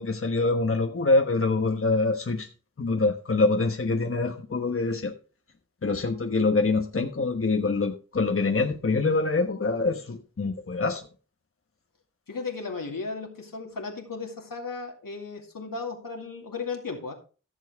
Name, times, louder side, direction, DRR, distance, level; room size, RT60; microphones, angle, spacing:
voice 1, 0.0-2.5 2.8-5.1 5.8-11.0, left 3 dB, 40° left, 4 dB, 1.1 m, -25 dB
voice 2, 12.3-17.1, left 4 dB, 85° left, 2 dB, 2.3 m, -35 dB
14.0 x 7.3 x 3.5 m, 0.35 s
wide cardioid pair, 85°, 33 cm